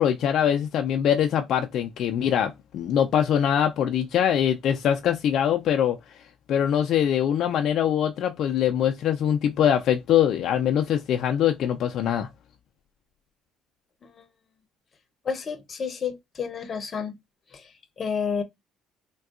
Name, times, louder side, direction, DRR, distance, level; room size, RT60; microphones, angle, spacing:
voice 1, 0.0-6.0 6.5-12.3, left 9 dB, 65° left, 0.4 m, -23 dB
voice 2, 15.2-17.1 17.5-18.4, left 6 dB, 40° left, 0.7 m, -30 dB
3.5 x 2.2 x 2.4 m
cardioid pair, 95°, 0 cm